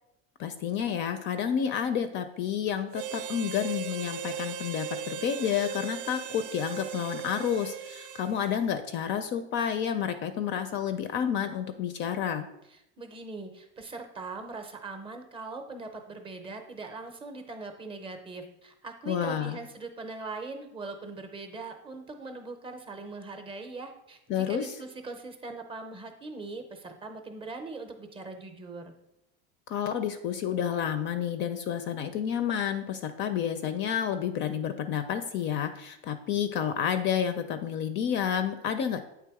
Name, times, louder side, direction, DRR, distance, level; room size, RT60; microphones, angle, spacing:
voice 1, 0.4-12.5 19.1-19.6 24.3-24.7 29.7-39.0, left 8 dB, 40° left, 9 dB, 0.4 m, -30 dB
Harmonica, 2.9-8.6, right 8 dB, 65° right, 0.5 m, -38 dB
voice 2, 12.7-28.9, right 3 dB, 20° right, 5 dB, 0.6 m, -41 dB
8.4 x 3.4 x 4.7 m, 0.82 s
cardioid pair, 165°, 30 cm